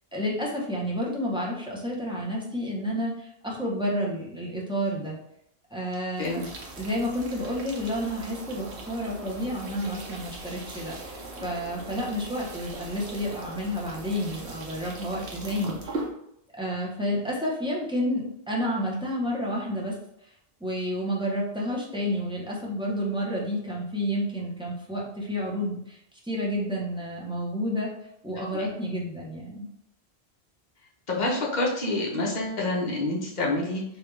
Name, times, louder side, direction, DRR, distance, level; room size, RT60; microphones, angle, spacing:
voice 1, 0.1-5.2 5.7-6.4 6.8-16.0 16.6-20.0 20.6-26.0 26.2-27.9 28.2-29.7, equal, 5° right, -5 dB, 0.5 m, -30 dB
sound 1, 6.1-16.1, right 2 dB, 80° right, 1.0 m, -40 dB
voice 2, 31.1-33.8, left 2 dB, 45° left, -3 dB, 0.9 m, -27 dB
3.4 x 2.3 x 3.1 m, 0.75 s
omnidirectional pair, 1.1 m